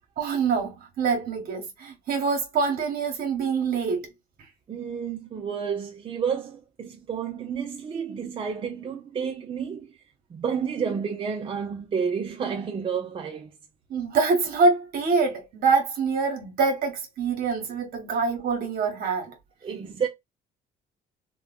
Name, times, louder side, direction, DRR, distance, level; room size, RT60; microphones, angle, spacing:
voice 1, 0.2-4.1 13.9-19.3, right 4 dB, 60° right, 1.1 m, -25 dB
voice 2, 4.7-10.0 10.3-13.5 19.6-20.1, right 6 dB, 30° right, 0.5 m, -30 dB
3.1 x 2.2 x 2.3 m
cardioid pair, 110°, 17 cm